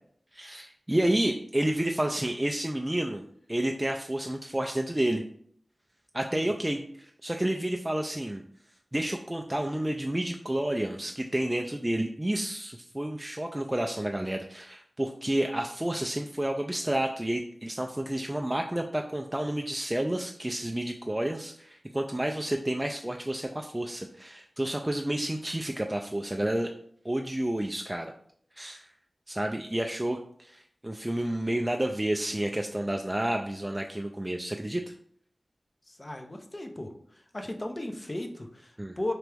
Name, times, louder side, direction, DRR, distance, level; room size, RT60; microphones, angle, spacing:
voice 1, 0.3-5.2 6.1-8.4 8.9-26.7 27.0-28.1 28.6-28.9 29.3-34.9 38.8-39.0, right 1 dB, 20° right, 2 dB, 0.3 m, -30 dB
voice 2, 35.9-36.9 37.3-39.1, left 1 dB, 35° left, 4 dB, 0.6 m, -36 dB
3.4 x 3.0 x 3.3 m, 0.62 s
wide cardioid pair, 50°, 0 cm